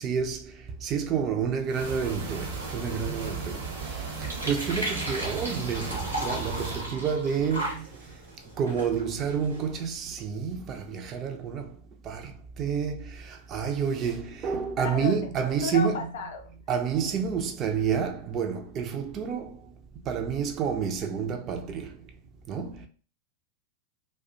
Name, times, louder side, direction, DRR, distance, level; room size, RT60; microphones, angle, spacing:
voice 1, 0.0-8.1 8.6-11.8 12.0-16.1 16.7-19.6 20.1-22.0 22.5-22.9, right 7 dB, 30° right, 0.3 m, -29 dB
sound 1, 1.7-6.9, right 4 dB, 60° right, 0.7 m, -36 dB
sound 2, 2.6-9.8, right 1 dB, 90° right, 0.9 m, -37 dB
voice 2, 14.8-15.3 15.6-16.5, left 6 dB, 60° left, 0.4 m, -33 dB
2.3 x 2.1 x 2.6 m
figure-of-eight pair, 90°, 0 cm